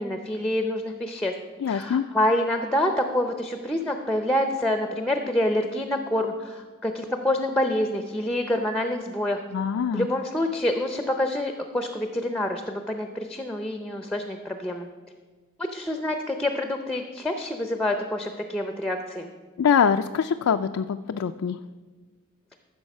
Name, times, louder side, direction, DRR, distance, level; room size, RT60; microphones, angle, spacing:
voice 1, 0.0-1.3 1.7-9.4 9.9-14.9 15.6-19.3, left 1 dB, 5° left, 5 dB, 0.5 m, -27 dB
voice 2, 1.6-2.0 9.5-10.1 19.6-21.6, left 7 dB, 80° left, 7 dB, 0.3 m, -23 dB
14.0 x 6.4 x 5.4 m, 1.4 s
head